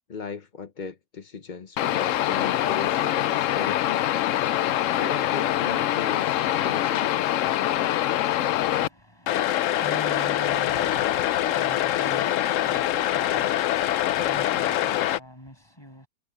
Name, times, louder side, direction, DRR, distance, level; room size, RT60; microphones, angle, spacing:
voice 1, 0.1-4.6 4.9-7.2, left 5 dB, 40° left, 0.7 m, -37 dB
sound 1, 1.8-8.9 9.3-15.2, left 12 dB, 70° left, 0.7 m, -24 dB
voice 2, 8.7-16.1, equal, 15° left, 8.1 m, -42 dB
omnidirectional pair, 1.8 m